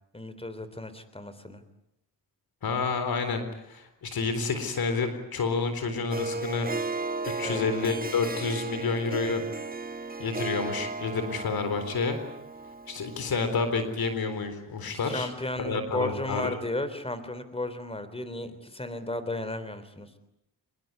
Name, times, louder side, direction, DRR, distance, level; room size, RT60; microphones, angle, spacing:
voice 1, 0.1-1.6 7.4-7.6 14.8-20.2, left 1 dB, 15° left, 12 dB, 3.5 m, -34 dB
voice 2, 2.6-6.7 7.4-9.4 10.2-12.2 12.9-15.3 15.6-16.5, left 4 dB, 65° left, 9 dB, 4.0 m, -29 dB
Harp, 6.1-13.6, right 3 dB, 25° right, 1.1 m, -35 dB
24.5 x 21.5 x 9.7 m, 0.80 s
cardioid pair, 85°, 38 cm